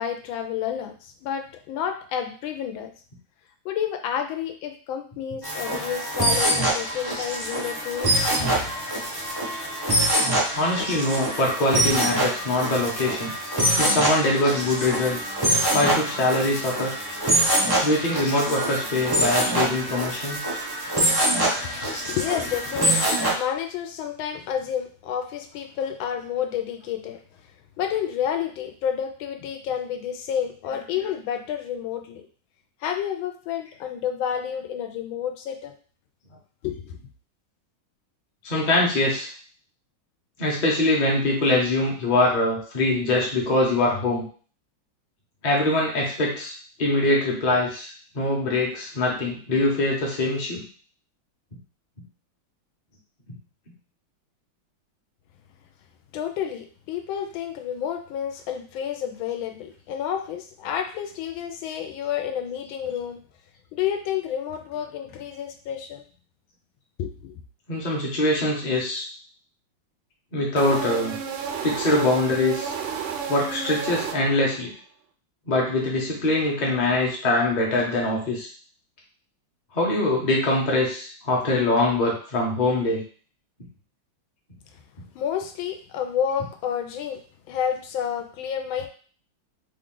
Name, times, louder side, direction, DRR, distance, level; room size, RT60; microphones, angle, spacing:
voice 1, 0.0-2.9 3.6-8.7 21.6-27.2 27.8-32.2 32.8-35.7 36.6-37.0 56.1-63.2 63.7-66.0 67.0-67.4 85.1-87.2 87.5-88.9, left 9 dB, 85° left, 6 dB, 1.3 m, -30 dB
sound 1, 5.4-23.3, right 1 dB, 35° right, 0.3 m, -25 dB
voice 2, 10.5-13.3 13.8-15.3 15.7-16.9 17.8-20.5 30.6-31.1 38.4-39.3 40.4-44.2 45.4-46.5 46.8-50.6 53.3-53.4 67.7-69.0 70.3-71.2 71.6-72.7 73.3-74.7 75.5-78.5 79.7-83.0 86.4-86.5, left 2 dB, 35° left, -2 dB, 0.7 m, -23 dB
sound 2, 70.6-74.6, right 7 dB, 85° right, 1.3 m, -32 dB
3.4 x 2.4 x 3.7 m, 0.42 s
omnidirectional pair, 2.1 m